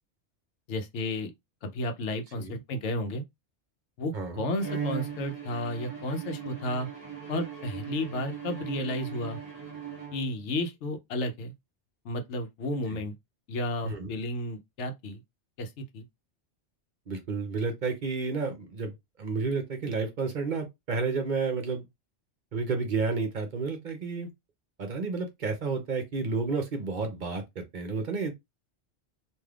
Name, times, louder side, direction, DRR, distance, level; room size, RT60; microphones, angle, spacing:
voice 1, 0.7-1.3 1.6-3.2 4.0-6.9 7.3-9.4 10.1-11.5 12.0-13.1 13.5-15.2 15.6-16.0, left 1 dB, 85° left, 1.0 m, -32 dB
Bowed string instrument, 4.6-10.6, right 7 dB, 35° right, 1.3 m, -39 dB
voice 2, 17.1-18.9 19.2-21.8 22.5-24.3 24.8-28.3, right 4 dB, 50° right, 0.7 m, -31 dB
3.3 x 2.6 x 2.3 m
omnidirectional pair, 1.2 m